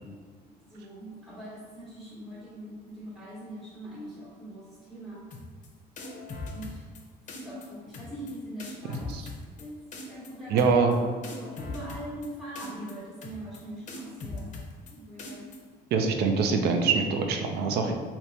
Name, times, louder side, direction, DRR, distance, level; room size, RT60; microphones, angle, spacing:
voice 1, 0.0-5.3 6.5-6.9 7.3-9.1 9.6-14.5 14.9-15.5, right 1 dB, ahead, -10 dB, 1.1 m, -42 dB
sound 1, 5.3-5.7 6.0-7.0 7.3-7.7 7.9-8.3 8.6-9.6 9.9-10.3 10.6-11.0 11.2-12.3 12.6-12.9 13.2-13.6 13.9-14.9 15.2-15.6, left 3 dB, 45° left, 0.6 m, -40 dB
voice 2, 10.5-11.0 15.9-17.9, right 4 dB, 75° right, 4 dB, 0.5 m, -24 dB
3.4 x 2.9 x 2.8 m, 1.5 s
cardioid pair, 110°, 17 cm